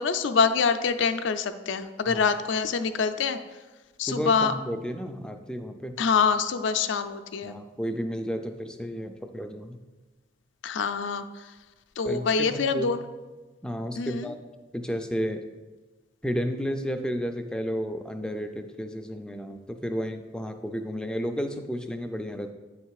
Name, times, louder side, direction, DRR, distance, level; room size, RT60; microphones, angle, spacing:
voice 1, 0.0-3.4 4.0-4.5 6.0-7.6 10.6-11.2 12.0-13.0 14.0-14.3, left 5 dB, 75° left, 9 dB, 0.4 m, -25 dB
voice 2, 4.0-5.9 7.4-9.8 12.0-12.9 13.6-14.4 14.7-15.4 16.2-22.5, equal, 5° left, 5 dB, 0.3 m, -32 dB
8.8 x 3.2 x 4.7 m, 1.2 s
head